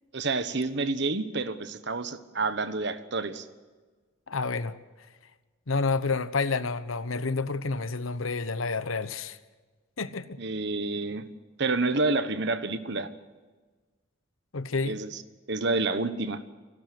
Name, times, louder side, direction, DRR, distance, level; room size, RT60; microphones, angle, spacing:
voice 1, 0.1-3.5 10.4-11.2 11.6-13.1 14.8-15.2 15.5-16.4, right 3 dB, 55° right, 11 dB, 1.2 m, -29 dB
voice 2, 4.3-4.7 5.7-9.4 10.0-10.4 14.5-15.0, left 4 dB, 80° left, 14 dB, 1.0 m, -29 dB
28.5 x 12.5 x 7.9 m, 1.4 s
head